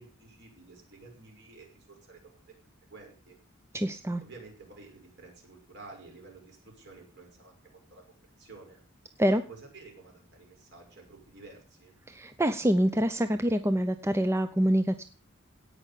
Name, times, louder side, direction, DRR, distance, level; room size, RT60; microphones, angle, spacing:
voice 1, 0.0-2.5 2.9-3.4 4.2-8.8 9.5-11.9, right 3 dB, 55° right, 1 dB, 5.9 m, -51 dB
voice 2, 3.7-4.2 9.2-9.4 12.1-15.0, equal, 10° right, 10 dB, 0.6 m, -26 dB
17.5 x 5.8 x 8.4 m, 0.41 s
head